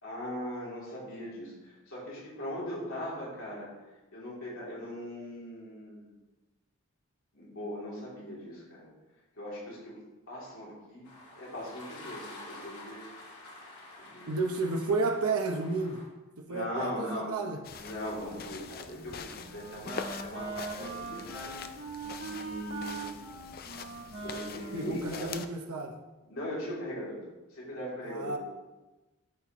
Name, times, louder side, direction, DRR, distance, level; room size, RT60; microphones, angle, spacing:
voice 1, 0.0-3.7 4.1-6.2 7.3-8.9 9.4-10.0 10.3-11.1 11.4-13.2 14.0-14.6 16.5-17.5 17.8-21.6 22.0-23.1 24.1-25.3 26.3-27.2 27.5-28.4, equal, 70° left, -6 dB, 3.1 m, -40 dB
sound 1, 11.0-16.0, left 2 dB, 85° left, 3.3 m, -48 dB
voice 2, 14.3-16.0 16.4-17.6 24.7-26.0 28.0-28.4, right 3 dB, 90° right, 1 dB, 0.9 m, -31 dB
sound 2, 17.6-25.5, left 5 dB, 45° left, 0.5 m, -44 dB
Wind instrument woodwind instrument, 18.9-26.0, right 4 dB, 55° right, 1.5 m, -42 dB
13.0 x 5.9 x 3.1 m, 1.1 s
head